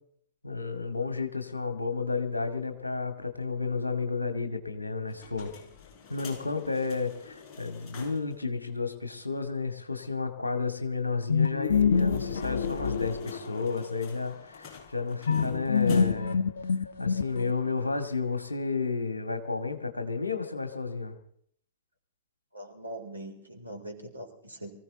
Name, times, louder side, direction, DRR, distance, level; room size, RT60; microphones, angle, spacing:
voice 1, 0.4-5.5 6.1-16.4 17.0-21.2, left 4 dB, 85° left, 7 dB, 2.1 m, -32 dB
sound 1, 5.1-8.4 8.7-8.8 9.0-9.1 11.9-16.4, left 6 dB, 35° left, 7.1 m, -44 dB
sound 2, 11.3-13.8 15.3-17.7, left 6 dB, 65° left, 1.1 m, -26 dB
voice 2, 22.5-24.7, right 1 dB, 90° right, 1 dB, 4.0 m, -42 dB
23.5 x 15.5 x 4.0 m, 0.63 s
figure-of-eight pair, 100°, 0 cm